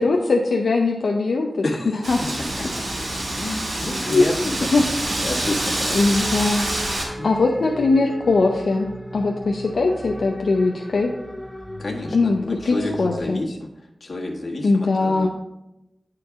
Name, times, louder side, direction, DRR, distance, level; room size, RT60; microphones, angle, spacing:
voice 1, 0.0-2.2 4.1-4.2 4.7-4.8 5.9-11.1 12.1-13.4 14.6-15.3, left 3 dB, 80° left, 1 dB, 0.6 m, -21 dB
voice 2, 1.6-2.0 2.4-2.7 3.4-5.9 7.2-7.3 11.8-15.3, left 2 dB, 55° left, 0 dB, 1.4 m, -30 dB
Wind, 2.0-7.0, right 1 dB, 85° right, 2.7 m, -27 dB
sound 1, 2.4-13.2, equal, 10° left, 0.8 m, -37 dB
9.7 x 4.6 x 3.6 m, 0.92 s
wide cardioid pair, 80°, 0 cm